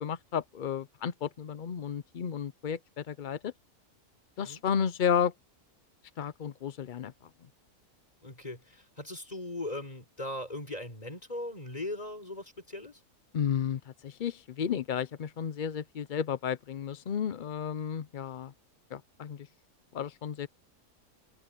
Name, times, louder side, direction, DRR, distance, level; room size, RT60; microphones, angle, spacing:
voice 1, 0.0-3.5 4.4-5.3 6.2-7.1 13.3-18.5 18.9-19.5 19.9-20.5, left 8 dB, 55° left, 0.5 m, -32 dB
voice 2, 8.2-13.0, left 1 dB, 25° left, 4.9 m, -39 dB
omnidirectional pair, 1.5 m